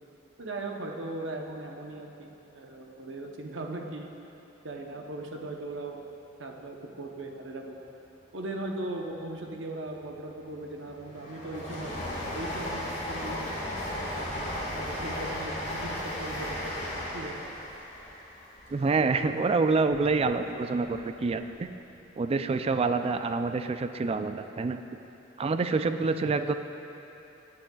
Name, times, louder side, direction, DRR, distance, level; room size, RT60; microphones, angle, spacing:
voice 1, 0.4-4.1 4.6-6.0 6.4-7.8 8.3-12.0 12.3-16.7 17.1-17.5, right 2 dB, 70° right, 1 dB, 0.9 m, -38 dB
Train, 10.1-20.3 20.7-21.6 21.9-22.0, left 1 dB, 35° left, 1.8 m, -36 dB
voice 2, 18.7-21.7 22.2-24.8 25.4-26.5, right 4 dB, 30° right, 9 dB, 0.3 m, -27 dB
15.5 x 8.8 x 2.3 m, 2.9 s
head